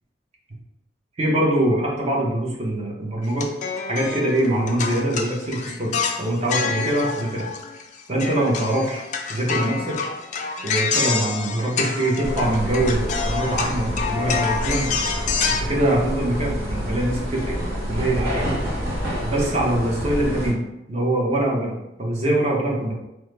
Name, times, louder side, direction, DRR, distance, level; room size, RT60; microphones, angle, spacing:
voice 1, 1.2-3.5 3.9-7.5 8.1-9.0 9.3-10.0 10.6-14.9 15.6-17.6 17.9-18.6 19.2-20.6 20.9-21.7 22.0-22.9, right 1 dB, 35° right, -2 dB, 0.7 m, -23 dB
sound 1, 3.3-7.9 8.2-15.6, left 5 dB, 45° left, 0.3 m, -27 dB
sound 2, 12.2-20.5, equal, 60° right, 1.0 m, -28 dB
3.0 x 2.0 x 3.2 m, 0.89 s
head